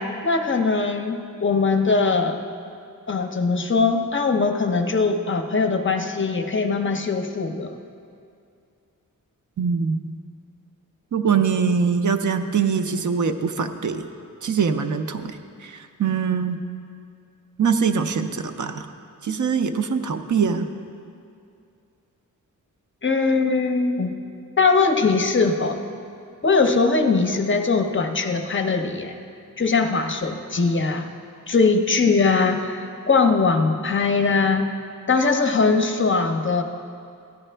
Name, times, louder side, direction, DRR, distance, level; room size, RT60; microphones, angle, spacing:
voice 1, 0.0-2.4 3.1-7.7 23.0-24.2 24.6-25.8 26.4-29.2 29.6-31.1 31.5-34.7 35.1-36.6, left 4 dB, 35° left, 5 dB, 0.6 m, -21 dB
voice 2, 9.6-10.1 11.1-14.1 14.4-16.6 17.6-18.9 19.2-20.7, right 6 dB, 60° right, 7 dB, 0.5 m, -23 dB
14.0 x 9.9 x 3.3 m, 2.5 s
wide cardioid pair, 140°, 34 cm